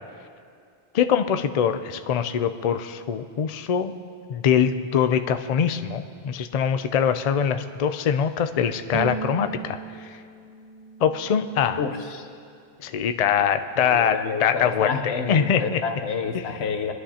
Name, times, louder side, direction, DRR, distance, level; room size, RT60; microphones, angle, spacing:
voice 1, 0.9-3.9 4.3-10.2 11.0-11.9 12.8-15.8 16.3-16.6, left 7 dB, 50° left, 9 dB, 0.5 m, -23 dB
Bowed string instrument, 8.9-12.2, right 4 dB, 35° right, 0.9 m, -36 dB
voice 2, 11.8-12.2 13.8-16.9, left 5 dB, 90° left, 6 dB, 1.1 m, -29 dB
22.0 x 11.0 x 2.8 m, 2.3 s
omnidirectional pair, 1.0 m